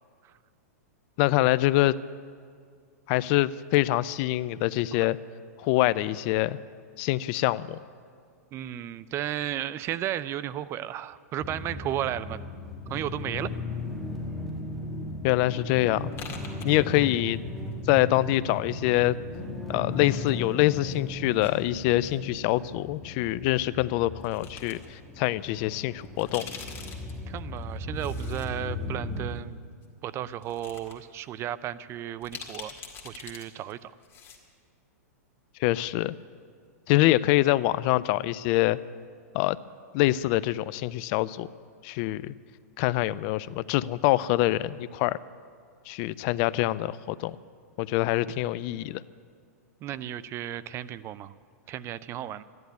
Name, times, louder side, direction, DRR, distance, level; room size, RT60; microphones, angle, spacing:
voice 1, 1.2-1.9 3.1-5.2 5.6-6.6 7.0-7.8 15.2-16.1 16.6-17.4 17.9-19.2 19.7-26.5 35.6-36.1 36.9-38.8 39.3-39.6 39.9-41.5 41.8-42.3 42.8-45.2 45.9-47.4 47.8-49.0, left 17 dB, 45° left, 18 dB, 0.5 m, -25 dB
voice 2, 8.5-12.4 12.9-13.5 27.3-29.6 30.0-32.7 33.0-33.9 49.8-51.3 51.7-52.4, right 12 dB, 30° right, 16 dB, 0.5 m, -34 dB
sound 1, 11.4-29.4, left 2 dB, ahead, 1.6 m, -37 dB
sound 2, 16.1-17.4 17.6-18.6 19.3-20.3 20.6-22.2 23.5-23.6 24.2-24.9 25.3-25.4 26.0-28.5 28.8-28.9 29.8-29.9 30.3-30.9 31.3-31.4 32.2-33.4 33.7-33.8 34.0-34.4, left 6 dB, 30° left, 2.0 m, -44 dB
13.0 x 11.0 x 9.4 m, 2.1 s
hypercardioid pair, 120°, 9 cm